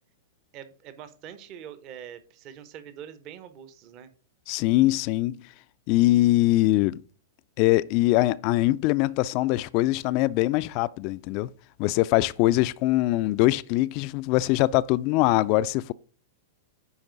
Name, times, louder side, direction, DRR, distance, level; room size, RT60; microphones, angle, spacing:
voice 1, 0.5-4.1 12.2-12.5, right 9 dB, 45° right, 1.0 m, -44 dB
voice 2, 4.5-5.4 5.9-7.0 7.6-11.5 11.8-15.9, left 17 dB, 45° left, 0.4 m, -22 dB
9.8 x 4.4 x 3.9 m
hypercardioid pair, 105°, 0 cm